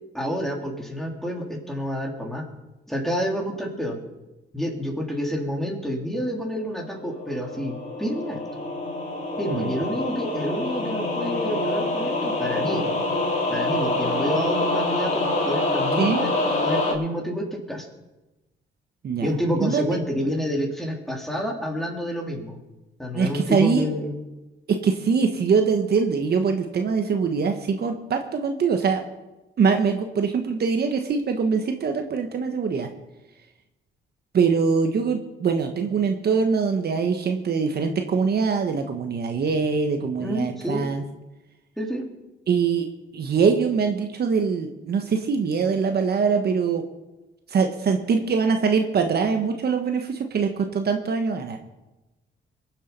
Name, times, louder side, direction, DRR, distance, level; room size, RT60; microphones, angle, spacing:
voice 1, 0.1-2.4 2.9-4.0 4.5-8.4 9.4-13.0 13.5-16.3 16.6-17.9 19.2-22.6 23.0-24.2 40.2-40.8 41.8-42.0, equal, ahead, 0 dB, 3.3 m, -28 dB
sound 1, 6.7-16.9, left 2 dB, 35° left, 3.7 m, -26 dB
voice 2, 19.6-19.9 23.1-23.8 24.7-29.0 29.6-32.9 34.3-41.0 42.5-42.9 43.1-46.8 47.5-51.6, right 5 dB, 55° right, 5 dB, 1.3 m, -23 dB
22.0 x 7.5 x 5.4 m, 1.0 s
cardioid pair, 90°, 20 cm